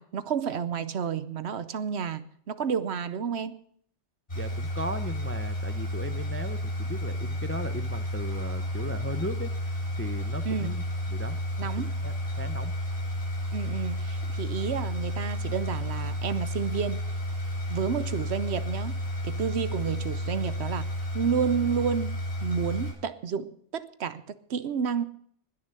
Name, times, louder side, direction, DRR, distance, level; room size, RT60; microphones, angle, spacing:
voice 1, 0.0-3.6 10.4-10.7 11.6-11.9 13.5-17.0 17.7-19.0 19.2-20.9 21.1-25.0, right 7 dB, 65° right, 14 dB, 1.0 m, -30 dB
sound 1, 4.3-22.9, equal, 45° left, 7.7 m, -32 dB
voice 2, 4.3-9.5 10.0-11.7 12.0-12.7, equal, 15° left, 10 dB, 0.5 m, -37 dB
20.0 x 6.8 x 6.7 m, 0.64 s
omnidirectional pair, 1.2 m